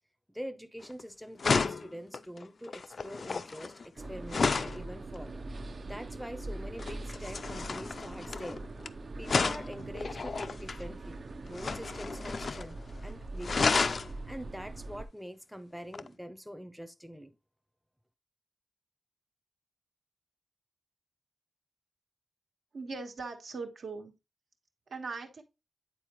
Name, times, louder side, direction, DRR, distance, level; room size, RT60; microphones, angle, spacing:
voice 1, 0.3-5.3 5.8-8.6 9.2-13.9 14.3-17.3, equal, ahead, 0.6 m, -44 dB
sound 1, 0.8-1.0 1.4-4.8 6.8-8.9 9.2-10.8 11.5-12.7 13.0-13.1 13.4-14.1 15.9-16.1, left 4 dB, 55° left, 0.3 m, -31 dB
sound 2, 4.0-15.1, right 2 dB, 50° right, 0.5 m, -42 dB
voice 2, 22.7-24.1 24.9-25.4, right 4 dB, 80° right, 1.4 m, -40 dB
9.1 x 4.3 x 3.0 m
wide cardioid pair, 125°, 0 cm